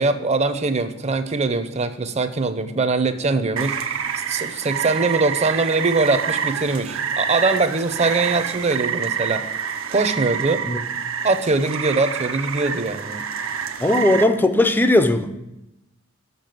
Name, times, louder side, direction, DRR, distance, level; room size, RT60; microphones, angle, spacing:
voice 1, 0.0-3.8 4.3-9.4 9.9-10.6 11.2-13.2, right 3 dB, 35° right, 10 dB, 0.7 m, -22 dB
Rain, 3.6-14.2, right 7 dB, 75° right, 0.7 m, -27 dB
voice 2, 13.8-15.5, left 1 dB, 10° left, 9 dB, 0.5 m, -18 dB
6.9 x 6.2 x 7.7 m, 0.92 s
head